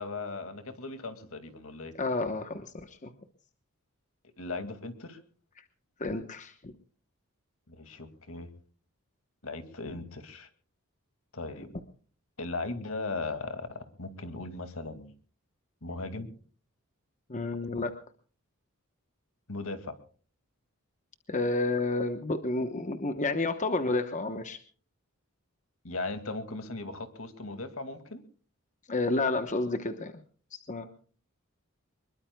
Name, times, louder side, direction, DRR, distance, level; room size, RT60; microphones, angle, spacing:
voice 1, 0.0-1.9 4.4-5.2 7.7-8.5 9.4-10.5 11.3-11.7 12.4-15.1 15.8-16.4 19.5-20.0 25.8-28.2, left 3 dB, 70° left, 9 dB, 2.2 m, -38 dB
voice 2, 2.0-3.1 6.0-6.5 17.3-17.9 21.3-24.6 28.9-30.1 30.5-30.9, left 2 dB, 35° left, 8 dB, 1.0 m, -30 dB
24.5 x 22.0 x 2.3 m, 0.42 s
head